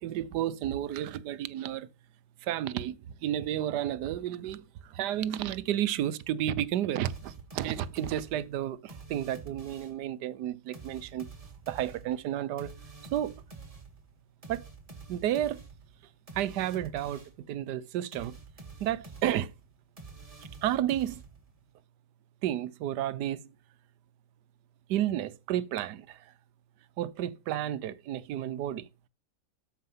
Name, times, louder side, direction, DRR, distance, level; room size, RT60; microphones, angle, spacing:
voice 1, 0.0-1.9 2.4-3.0 3.2-11.3 11.7-12.7 13.1-13.3 14.5-14.6 15.1-15.6 16.3-17.2 17.5-18.4 18.8-19.5 20.6-21.2 22.4-23.4 24.9-26.3 27.0-28.9, right 11 dB, 80° right, 1.3 m, -31 dB
Ld Rave Theme, 7.0-10.1 10.7-17.5 18.1-21.6, right 4 dB, 20° right, 1.7 m, -48 dB
13.5 x 4.7 x 5.6 m
omnidirectional pair, 1.8 m